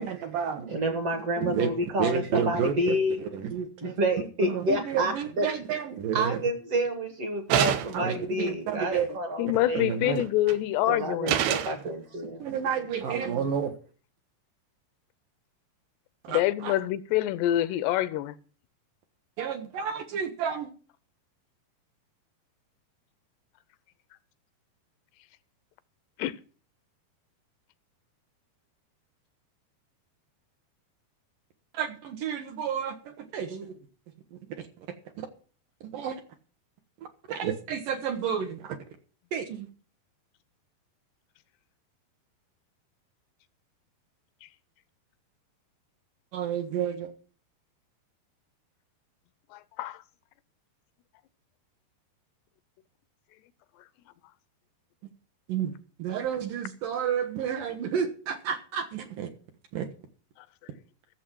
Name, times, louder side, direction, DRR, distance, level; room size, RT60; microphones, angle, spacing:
voice 1, 0.0-1.0 1.4-1.7 2.0-6.4 7.9-9.2 9.7-10.2 12.4-13.7 16.2-16.7 19.4-20.7 31.7-33.7 34.3-34.9 35.2-35.3 35.9-36.2 37.3-38.8 39.3-39.7 46.3-47.1 55.5-55.7 56.0-59.3 59.7-59.9, right 7 dB, 70° right, 2.3 m, -31 dB
voice 2, 0.7-3.2 3.8-5.5 6.1-9.8 10.8-12.4 13.2-13.4, right 1 dB, 50° right, 2.1 m, -29 dB
sound 1, 7.5-8.1 10.2-10.6 11.3-11.8, right 11 dB, 85° right, 3.0 m, -26 dB
voice 3, 9.4-11.3 16.3-18.4 26.2-26.3 49.5-50.0, left 14 dB, 85° left, 2.7 m, -26 dB
15.0 x 7.2 x 6.0 m
omnidirectional pair, 4.7 m